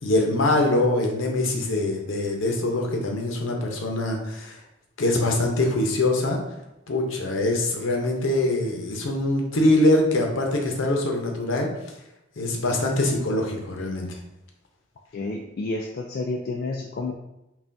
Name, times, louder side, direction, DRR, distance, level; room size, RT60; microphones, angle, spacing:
voice 1, 0.0-4.6 5.0-6.4 6.9-11.7 12.4-14.2, left 1 dB, 70° left, 1 dB, 0.7 m, -23 dB
voice 2, 15.1-17.1, left 3 dB, 50° left, 1 dB, 0.3 m, -30 dB
5.5 x 2.4 x 2.6 m, 0.91 s
head